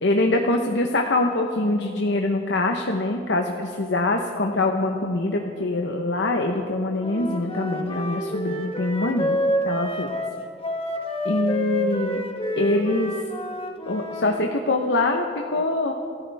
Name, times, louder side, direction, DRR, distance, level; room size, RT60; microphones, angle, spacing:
voice 1, 0.0-9.4 9.7-10.1 11.2-12.2 12.6-13.1 13.9-15.9, left 2 dB, 70° left, 3 dB, 0.9 m, -24 dB
Wind instrument woodwind instrument, 7.0-14.4, left 1 dB, 30° left, 1.5 m, -28 dB
27.0 x 14.0 x 3.5 m, 2.5 s
head